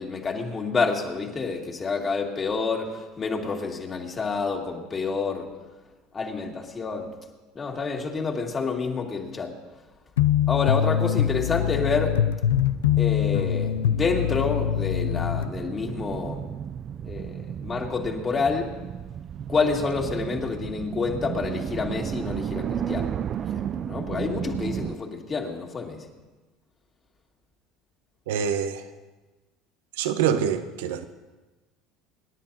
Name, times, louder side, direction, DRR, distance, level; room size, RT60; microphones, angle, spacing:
voice 1, 0.0-5.5 6.1-7.1 7.5-9.5 10.5-12.2 13.0-16.5 17.0-18.7 19.5-23.1 23.5-26.0, left 4 dB, 30° left, 1 dB, 2.4 m, -28 dB
sound 1, 10.2-15.5, left 10 dB, 80° left, 0.4 m, -23 dB
sound 2, 12.6-24.9, right 9 dB, 45° right, 0.4 m, -34 dB
voice 2, 28.3-28.8 30.0-31.0, right 8 dB, 75° right, 9 dB, 0.9 m, -25 dB
27.0 x 10.5 x 2.9 m, 1.2 s
hypercardioid pair, 75°, 0 cm